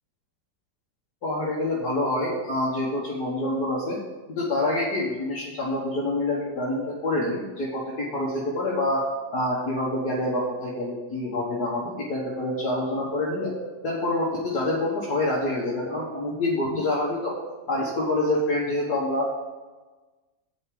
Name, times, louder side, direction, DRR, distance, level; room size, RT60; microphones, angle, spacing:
voice 1, 1.2-4.0 4.3-9.0 9.3-13.5 13.8-17.3 17.7-19.3, left 1 dB, 65° left, -5 dB, 2.1 m, -26 dB
8.1 x 5.4 x 7.5 m, 1.3 s
omnidirectional pair, 1.9 m